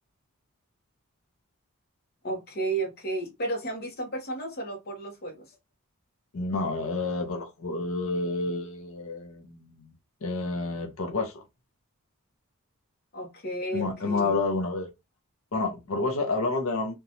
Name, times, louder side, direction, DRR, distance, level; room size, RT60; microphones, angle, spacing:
voice 1, 2.2-5.4 13.1-14.3, right 2 dB, 45° left, 0.9 m, -33 dB
voice 2, 6.3-9.9 10.2-11.4 13.7-14.9 15.5-16.9, left 3 dB, 75° left, 0.6 m, -29 dB
2.9 x 2.2 x 2.6 m
head